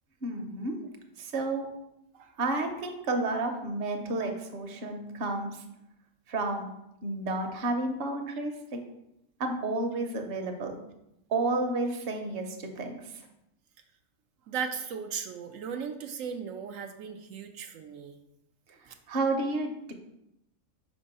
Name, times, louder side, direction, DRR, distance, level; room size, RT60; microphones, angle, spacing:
voice 1, 0.2-0.8 1.2-1.7 2.4-5.6 6.3-6.7 7.0-8.8 9.4-10.8 11.3-13.0 19.1-19.9, right 2 dB, 55° right, 4 dB, 0.9 m, -31 dB
voice 2, 14.5-18.1 18.9-19.0, right 6 dB, 85° right, 5 dB, 1.0 m, -37 dB
5.4 x 3.6 x 5.3 m, 0.84 s
omnidirectional pair, 1.3 m